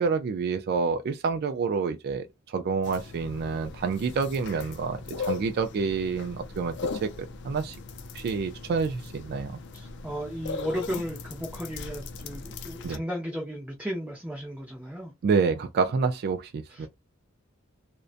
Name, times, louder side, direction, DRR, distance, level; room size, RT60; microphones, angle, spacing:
voice 1, 0.0-6.7 7.0-7.1 7.4-7.8 8.1-9.6 12.8-13.0 15.2-16.9, right 5 dB, 50° right, 0.3 m, -28 dB
sound 1, 2.8-13.0, left 4 dB, 60° left, 0.4 m, -39 dB
voice 2, 9.7-15.1 16.7-16.9, equal, 5° right, 0.6 m, -35 dB
2.5 x 2.1 x 2.4 m
head